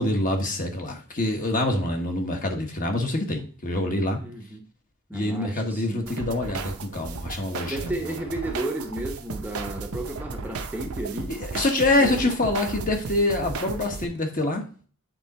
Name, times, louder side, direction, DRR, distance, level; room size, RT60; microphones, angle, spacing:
voice 1, 0.0-4.2 5.1-8.1 11.3-14.7, left 2 dB, 40° left, 1.3 m, -25 dB
voice 2, 4.2-4.6 5.1-6.2 7.7-11.3 12.0-12.3, right 2 dB, 10° right, 0.7 m, -33 dB
sound 1, 6.1-14.1, right 3 dB, 80° right, 0.8 m, -35 dB
8.6 x 3.7 x 4.2 m
head